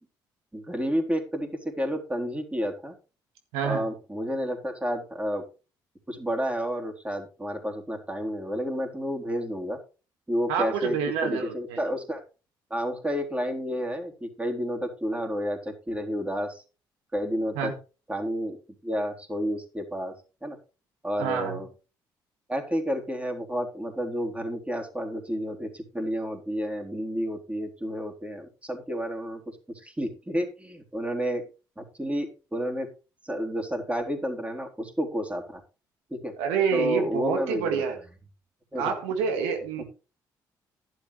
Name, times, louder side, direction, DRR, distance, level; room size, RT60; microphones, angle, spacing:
voice 1, 0.5-3.0 3.6-5.4 6.1-9.8 10.3-12.2 12.7-16.6 17.1-17.7 18.1-18.6 18.8-20.1 20.4-20.6 21.0-21.7 22.5-31.5 31.8-32.9 33.2-35.6 36.1-36.3 36.7-37.8 38.7-38.9, equal, 15° right, 2 dB, 3.7 m, -30 dB
voice 2, 3.5-3.8 10.5-11.8 17.6-17.7 21.2-21.6 36.4-38.0 38.8-39.8, right 6 dB, 85° right, 5 dB, 1.8 m, -27 dB
11.5 x 11.0 x 3.3 m, 0.32 s
hypercardioid pair, 50°, 10 cm